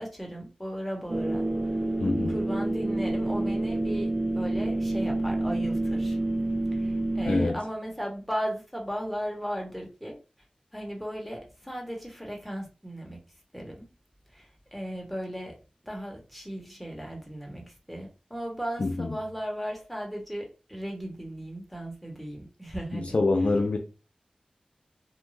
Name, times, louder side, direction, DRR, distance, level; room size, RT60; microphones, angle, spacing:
voice 1, 0.0-1.5 2.3-6.2 6.7-10.1 10.7-13.2 13.5-13.9 14.3-15.6 15.8-23.1, equal, ahead, 1.0 m, -36 dB
sound 1, 1.1-7.5, right 2 dB, 40° right, 0.4 m, -28 dB
voice 2, 2.0-2.4 7.3-7.6 18.8-19.2 22.9-23.8, left 3 dB, 65° left, 0.3 m, -25 dB
2.4 x 2.2 x 3.1 m
wide cardioid pair, 45°, 2 cm